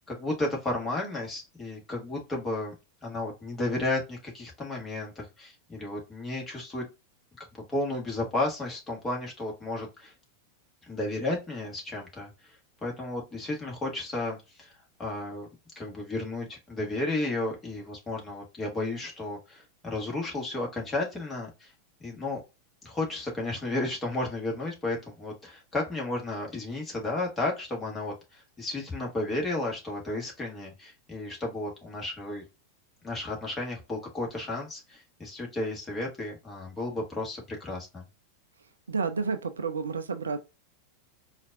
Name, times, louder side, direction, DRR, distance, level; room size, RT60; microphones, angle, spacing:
voice 1, 0.1-2.7 3.0-6.8 7.4-10.1 10.8-12.3 12.8-14.7 15.0-15.5 15.7-21.7 22.0-22.4 22.8-32.4 33.0-38.0, left 2 dB, 15° left, 1.5 m, -33 dB
voice 2, 38.9-40.4, right 4 dB, 70° right, 0.4 m, -30 dB
4.4 x 2.5 x 2.5 m
figure-of-eight pair, 90°, 0 cm